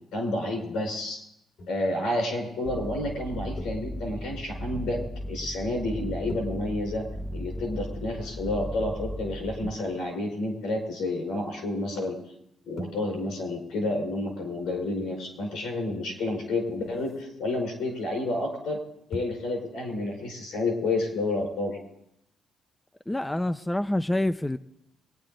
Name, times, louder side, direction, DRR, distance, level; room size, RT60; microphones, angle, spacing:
voice 1, 0.1-1.2 1.7-5.0 5.3-7.0 7.3-12.2 12.7-18.8 19.1-21.8, left 2 dB, 85° left, 4.9 m, -30 dB
sound 1, 1.6-2.0 2.8-3.0 3.6-4.3 6.3-8.5 9.6-11.5 12.8-18.0 18.3-18.5 19.1-19.5 19.8-19.9, equal, 65° left, 1.8 m, -46 dB
sound 2, 2.7-9.7, equal, 15° right, 0.9 m, -36 dB
voice 2, 23.1-24.6, left 1 dB, 10° left, 0.5 m, -27 dB
24.5 x 9.7 x 3.9 m
cardioid pair, 90°, 0 cm